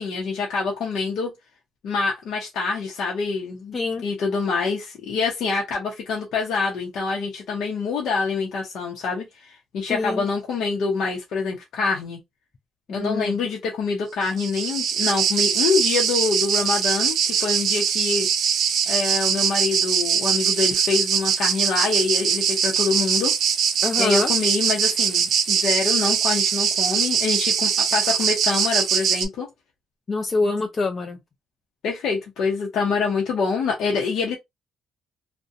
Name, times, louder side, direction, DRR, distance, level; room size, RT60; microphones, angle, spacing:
voice 1, 0.0-1.3 1.8-3.8 4.0-12.2 12.9-18.3 18.9-23.3 24.0-29.5 31.8-34.4, left 4 dB, 75° left, 0.7 m, -25 dB
voice 2, 3.7-4.0 9.9-10.3 12.9-13.4 23.8-24.3 30.1-31.2, left 3 dB, 40° left, 0.5 m, -25 dB
sound 1, 14.2-29.3, right 7 dB, 70° right, 0.4 m, -22 dB
2.6 x 2.1 x 2.4 m
cardioid pair, 90°, 0 cm